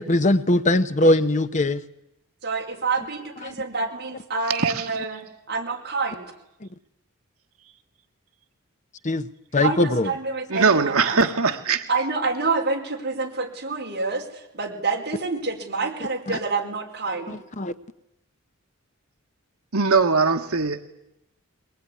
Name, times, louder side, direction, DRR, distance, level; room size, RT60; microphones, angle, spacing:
voice 1, 0.0-1.8 3.4-3.5 9.0-9.3 9.5-10.1 16.3-16.4 17.6-17.7, left 1 dB, 35° left, 12 dB, 0.9 m, -20 dB
voice 2, 2.4-6.3 9.6-11.2 11.9-17.4, right 4 dB, 50° right, 1 dB, 4.8 m, -27 dB
voice 3, 4.5-4.9 10.5-11.8 19.7-20.9, right 4 dB, 85° right, 6 dB, 1.4 m, -21 dB
22.5 x 20.5 x 9.9 m, 0.85 s
head